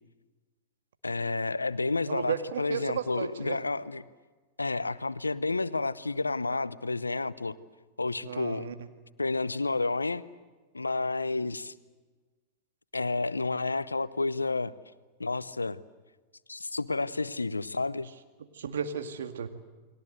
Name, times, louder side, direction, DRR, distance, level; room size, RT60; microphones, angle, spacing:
voice 1, 1.0-4.0 4.6-7.6 8.0-8.7 9.2-10.2 10.7-11.7 12.9-14.8 15.2-15.8 16.5-18.1, left 3 dB, 90° left, 17 dB, 0.7 m, -30 dB
voice 2, 2.0-3.6 8.2-8.7 18.5-19.5, right 7 dB, 70° right, 7 dB, 2.0 m, -34 dB
30.0 x 21.0 x 7.9 m, 1.3 s
figure-of-eight pair, 95°, 0 cm